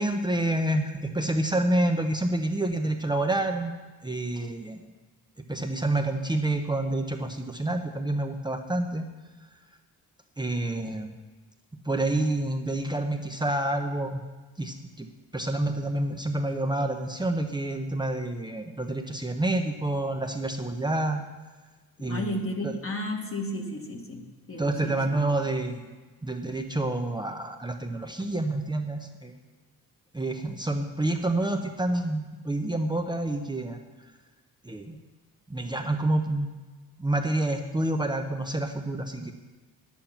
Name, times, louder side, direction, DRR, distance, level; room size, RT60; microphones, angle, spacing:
voice 1, 0.0-3.7 4.0-4.8 5.5-9.0 10.4-11.2 11.8-14.2 14.6-15.1 15.3-21.2 22.0-22.4 22.6-22.7 24.6-25.9 26.2-29.3 30.1-33.8 34.6-35.0 35.5-36.5 37.0-39.3, right 1 dB, 10° right, 3 dB, 0.8 m, -28 dB
voice 2, 22.1-25.0, left 1 dB, 35° left, 1 dB, 1.7 m, -33 dB
10.5 x 8.8 x 5.8 m, 1.3 s
cardioid pair, 90°, 38 cm